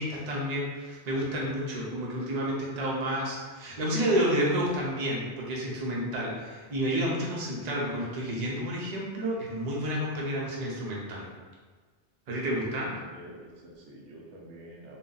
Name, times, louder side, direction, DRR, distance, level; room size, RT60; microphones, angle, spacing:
voice 1, 0.0-11.3 12.3-12.9, equal, 45° right, -4 dB, 0.6 m, -30 dB
voice 2, 12.3-15.0, right 1 dB, 90° right, -3 dB, 1.0 m, -47 dB
2.6 x 2.2 x 3.8 m, 1.4 s
omnidirectional pair, 1.2 m